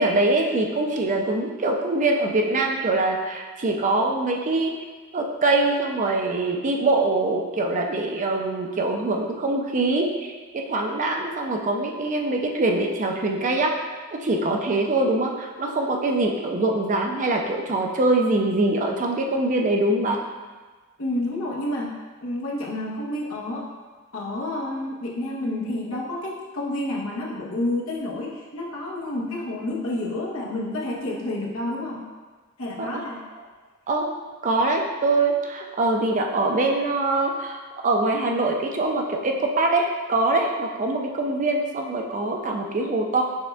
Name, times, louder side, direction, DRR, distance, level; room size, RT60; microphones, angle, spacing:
voice 1, 0.0-4.7 5.1-13.7 14.2-20.2 32.8-33.0 33.9-34.1 34.4-37.6 37.8-43.2, right 2 dB, 35° right, 2 dB, 0.5 m, -23 dB
voice 2, 21.0-21.9 22.2-23.7 24.1-32.0 32.6-33.2, left 1 dB, 75° left, -4 dB, 0.9 m, -29 dB
6.3 x 2.3 x 3.3 m, 1.4 s
head